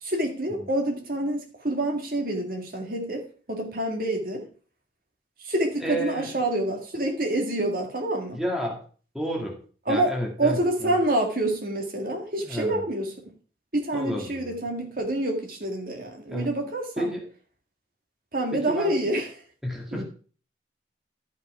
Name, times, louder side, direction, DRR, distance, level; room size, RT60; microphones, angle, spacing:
voice 1, 0.0-4.5 5.4-8.4 9.9-13.1 13.7-17.1 18.3-19.3 19.9-20.0, right 1 dB, 50° right, 2.0 m, -27 dB
voice 2, 5.8-6.4 8.3-8.8 9.1-9.6 9.9-11.0 12.4-12.8 13.9-14.6 16.3-16.5 17.0-17.3 18.5-19.0 19.6-20.0, equal, ahead, 2.0 m, -31 dB
12.5 x 5.7 x 4.8 m
head